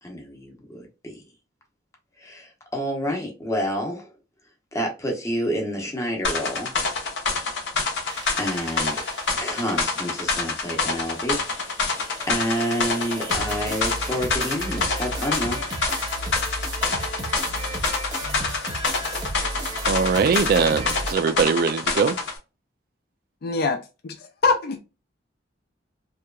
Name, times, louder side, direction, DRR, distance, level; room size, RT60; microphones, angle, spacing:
voice 1, 0.0-1.2 2.2-4.1 4.7-6.7 8.4-9.0 9.4-11.4 12.3-15.6, equal, 15° left, 0.7 m, -28 dB
sound 1, 6.2-22.4, left 4 dB, 70° left, 0.8 m, -27 dB
sound 2, 8.1-21.1, right 1 dB, 20° right, 0.7 m, -34 dB
voice 2, 19.8-22.2, right 5 dB, 55° right, 0.3 m, -21 dB
voice 3, 23.4-23.8 24.4-24.8, left 4 dB, 55° left, 0.4 m, -22 dB
2.9 x 2.3 x 2.2 m
head